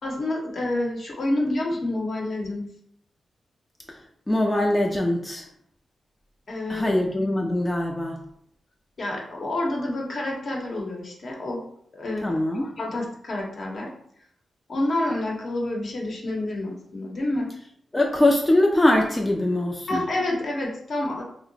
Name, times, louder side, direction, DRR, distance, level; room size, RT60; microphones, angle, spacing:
voice 1, 0.0-2.7 6.5-6.9 9.0-11.7 11.9-13.9 14.7-17.5 19.9-21.2, left 1 dB, 60° left, -1 dB, 0.8 m, -28 dB
voice 2, 4.3-5.4 6.7-8.2 12.2-12.7 17.9-20.0, left 1 dB, 15° left, 1 dB, 0.4 m, -22 dB
2.7 x 2.0 x 3.9 m, 0.69 s
cardioid pair, 85°, 0 cm